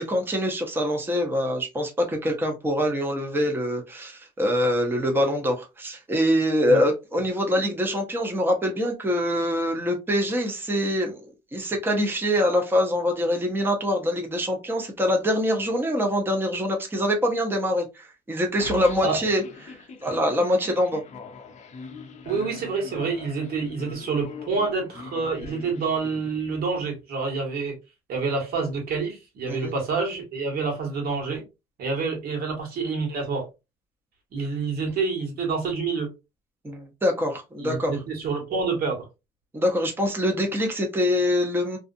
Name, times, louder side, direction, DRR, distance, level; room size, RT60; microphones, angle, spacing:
voice 1, 0.0-11.2 11.5-21.0 29.5-29.7 36.6-37.9 39.5-41.8, equal, 10° right, 0.6 m, -24 dB
sound 1, 18.6-26.9, left 4 dB, 45° left, 0.6 m, -43 dB
voice 2, 22.2-27.7 28.1-31.4 31.8-33.5 34.3-36.1 37.6-39.1, right 4 dB, 65° right, 1.4 m, -27 dB
2.5 x 2.4 x 2.5 m
cardioid pair, 110°, 17 cm